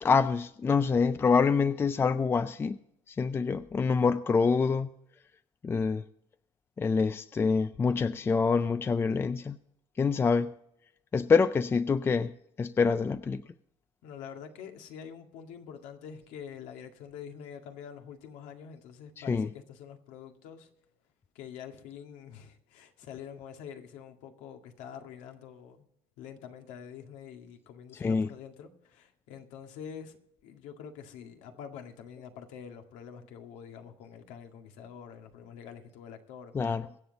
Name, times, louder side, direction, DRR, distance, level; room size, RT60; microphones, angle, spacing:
voice 1, 0.0-2.8 3.1-4.9 5.6-6.1 6.8-9.6 10.0-10.5 11.1-13.4 19.2-19.5 28.0-28.3 36.5-36.9, left 5 dB, 20° left, 0.4 m, -26 dB
voice 2, 14.0-20.7 21.4-25.9 26.2-30.2 30.4-36.5, left 8 dB, 80° left, 2.0 m, -46 dB
23.5 x 7.8 x 4.0 m
cardioid pair, 135°, 12 cm